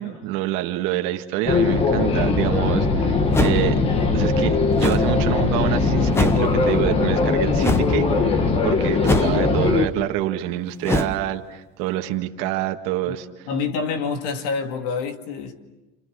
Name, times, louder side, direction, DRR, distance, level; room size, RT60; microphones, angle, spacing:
voice 1, 0.0-3.8 4.1-13.5, right 14 dB, 70° right, 1.7 m, -27 dB
sound 1, 1.5-9.9, left 4 dB, 30° left, 1.5 m, -20 dB
sound 2, 3.3-3.8 4.8-5.1 6.1-6.5 7.6-7.9 9.0-9.5 10.8-11.2, left 2 dB, 10° left, 0.9 m, -23 dB
voice 2, 13.5-15.6, left 5 dB, 80° left, 2.2 m, -27 dB
29.0 x 28.0 x 6.6 m
cardioid pair, 165°, 21 cm